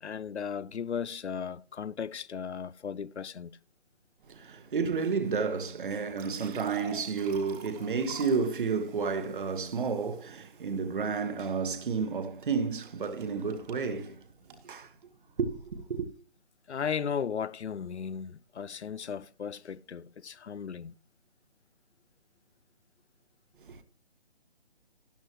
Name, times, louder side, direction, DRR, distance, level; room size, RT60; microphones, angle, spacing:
voice 1, 0.0-3.6 16.7-20.9, left 7 dB, 90° left, 0.5 m, -36 dB
voice 2, 4.3-14.2 14.6-14.9 15.4-16.1 23.6-23.8, right 5 dB, 50° right, 1.2 m, -31 dB
sound 1, 6.0-11.0 12.5-14.7, right 5 dB, 15° right, 1.3 m, -49 dB
13.0 x 10.0 x 2.9 m
figure-of-eight pair, 150°, 33 cm